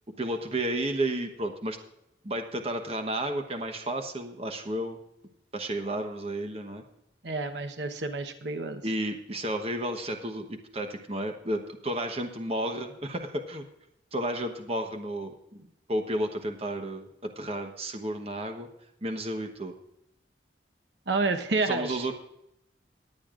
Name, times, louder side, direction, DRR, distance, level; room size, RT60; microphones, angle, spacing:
voice 1, 0.1-1.8 2.2-5.0 5.5-6.8 8.8-13.6 14.1-15.6 15.9-18.7 19.0-19.7 21.6-22.1, right 1 dB, 35° right, 5 dB, 1.0 m, -32 dB
voice 2, 7.2-8.8 21.1-22.0, right 3 dB, 70° right, 7 dB, 1.0 m, -29 dB
20.5 x 8.6 x 2.5 m, 0.82 s
head